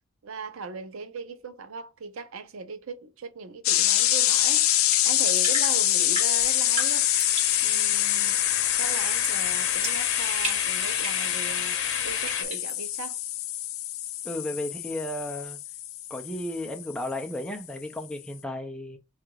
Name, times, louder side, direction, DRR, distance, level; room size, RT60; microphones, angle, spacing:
voice 1, 0.2-7.1 7.6-8.4 8.8-13.2, right 4 dB, 75° right, 0.6 m, -38 dB
sound 1, 3.6-17.2, left 13 dB, 80° left, 0.4 m, -26 dB
sound 2, 4.9-7.6 9.2-9.4 9.8-11.3 12.3-12.8, right 2 dB, 30° right, 1.6 m, -36 dB
sound 3, 5.3-12.4, left 6 dB, 60° left, 0.8 m, -34 dB
voice 2, 14.2-15.6 16.1-19.0, left 1 dB, 5° left, 0.5 m, -34 dB
3.8 x 2.4 x 4.5 m
head